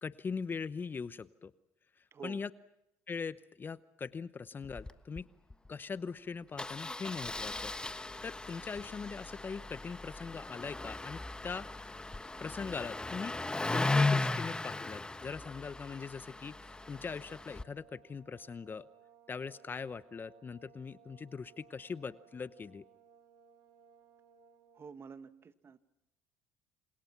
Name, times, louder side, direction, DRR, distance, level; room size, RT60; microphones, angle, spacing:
voice 1, 0.0-1.5 2.2-2.5 3.1-5.3 5.7-7.7 8.2-11.7 12.4-13.4 13.7-18.9 19.3-22.8, left 5 dB, 30° left, 17 dB, 0.9 m, -41 dB
Engine starting, 4.6-4.9 5.2-5.3 5.5-5.7 6.6-17.6, left 2 dB, 15° left, 1.3 m, -36 dB
sound 1, 16.2-25.0, right 7 dB, 70° right, 6.9 m, -63 dB
voice 2, 24.7-25.8, right 6 dB, 35° right, 12 dB, 1.8 m, -48 dB
28.5 x 27.0 x 6.0 m, 0.85 s
supercardioid pair, 80°, 7 cm